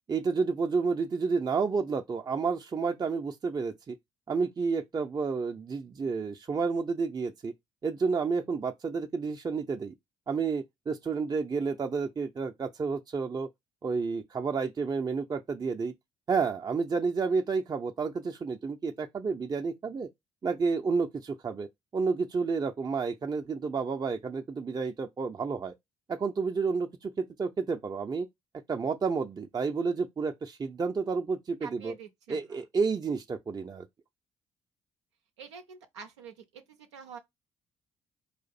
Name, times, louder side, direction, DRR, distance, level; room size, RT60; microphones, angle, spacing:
voice 1, 0.1-4.0 4.3-7.5 7.8-9.9 10.3-13.5 13.8-15.9 16.3-20.1 20.4-21.7 21.9-25.7 26.1-28.3 28.7-31.9 32.3-33.9, right 5 dB, 25° right, 0.6 m, -30 dB
voice 2, 31.6-32.6 35.4-37.2, right 6 dB, 80° right, 0.6 m, -47 dB
4.9 x 2.5 x 4.1 m
figure-of-eight pair, 45°, 15 cm